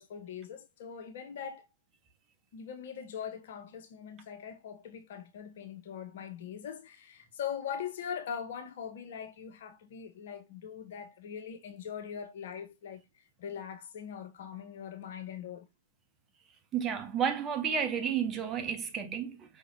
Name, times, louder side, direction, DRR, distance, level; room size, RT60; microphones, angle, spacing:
voice 1, 0.0-1.7 2.5-15.6, left 8 dB, 60° left, 0.8 m, -41 dB
voice 2, 16.7-19.6, right 7 dB, 25° right, 0.8 m, -32 dB
5.0 x 2.8 x 2.7 m
hypercardioid pair, 115°, 0 cm